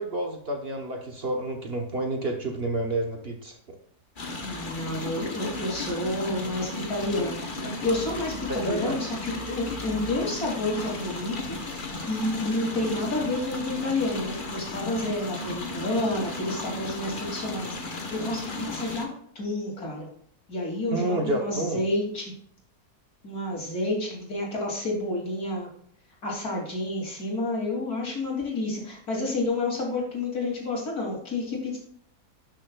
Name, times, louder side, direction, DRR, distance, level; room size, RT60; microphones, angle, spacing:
voice 1, 0.0-3.6 8.5-9.0 20.9-21.8, right 1 dB, 45° right, 2 dB, 1.1 m, -29 dB
sound 1, 4.2-19.1, left 2 dB, 35° left, 1.2 m, -35 dB
voice 2, 4.4-19.1 19.3-20.1 20.5-22.3 23.2-25.7 26.2-31.8, left 2 dB, 70° left, -2 dB, 3.2 m, -30 dB
12.0 x 6.6 x 2.3 m, 0.62 s
omnidirectional pair, 1.7 m